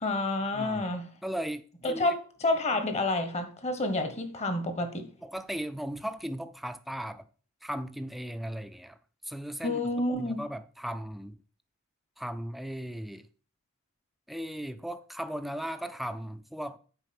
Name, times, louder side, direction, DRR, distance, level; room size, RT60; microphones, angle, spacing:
voice 1, 0.0-1.1 1.8-5.1 9.6-10.4, left 2 dB, 30° left, 1.1 m, -29 dB
voice 2, 0.5-0.9 1.2-2.1 5.2-7.3 7.6-9.0 9.2-9.8 10.1-11.4 12.2-13.3 14.3-16.8, equal, ahead, 0.4 m, -37 dB
8.1 x 4.9 x 5.9 m
head